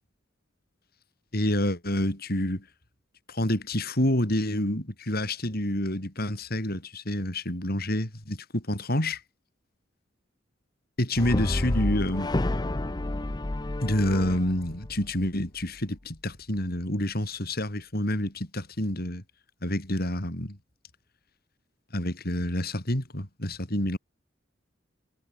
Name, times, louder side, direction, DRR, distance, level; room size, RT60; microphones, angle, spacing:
voice 1, 1.3-2.6 3.3-9.2 11.0-12.3 13.8-19.2 19.6-20.6 21.9-24.0, left 1 dB, 55° left, 5.4 m, -28 dB
Brass instrument, 11.2-15.4, left 1 dB, 20° left, 0.6 m, -30 dB
head